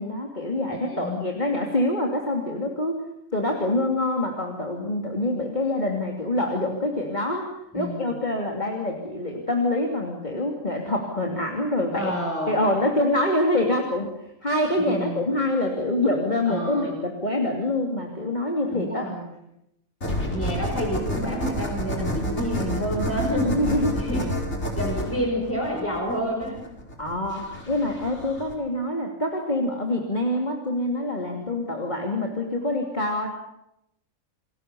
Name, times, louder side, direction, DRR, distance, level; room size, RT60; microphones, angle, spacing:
voice 1, 0.0-3.0 3.3-12.1 12.5-14.1 14.4-19.1 23.4-24.0 27.0-33.3, left 1 dB, 30° left, 1 dB, 3.1 m, -25 dB
voice 2, 0.9-1.2 7.7-8.2 11.9-12.6 14.9-15.2 16.4-16.9 18.7-19.3 20.3-23.6 23.9-24.3 24.8-26.7, equal, 10° left, -1 dB, 5.1 m, -29 dB
sound 1, 20.0-28.5, equal, 50° left, 5.1 m, -29 dB
29.5 x 21.0 x 7.0 m, 0.81 s
omnidirectional pair, 1.4 m